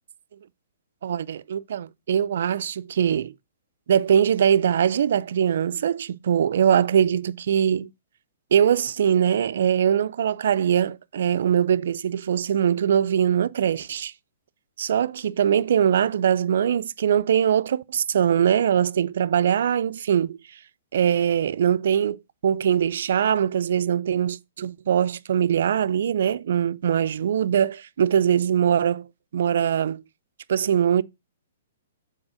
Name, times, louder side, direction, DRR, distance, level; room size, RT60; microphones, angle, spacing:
voice 1, 1.0-3.3 3.9-7.9 8.5-14.1 14.8-20.4 20.9-22.2 22.4-29.1 29.3-30.0 30.5-31.0, right 9 dB, 70° right, 0.4 m, -22 dB
6.2 x 4.3 x 6.2 m
hypercardioid pair, 140°, 0 cm